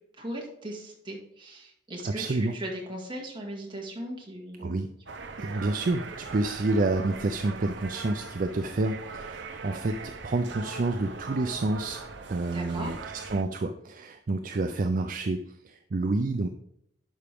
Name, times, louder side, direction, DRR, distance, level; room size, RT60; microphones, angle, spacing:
voice 1, 0.2-4.8 12.5-13.0, right 1 dB, 25° right, -1 dB, 2.1 m, -38 dB
voice 2, 2.2-2.6 4.6-4.9 5.4-12.0 12.3-13.0 13.3-16.5, right 2 dB, 50° right, 7 dB, 0.5 m, -29 dB
sound 1, 5.1-13.4, right 4 dB, 75° right, 0.8 m, -41 dB
11.0 x 5.1 x 3.6 m, 0.76 s
head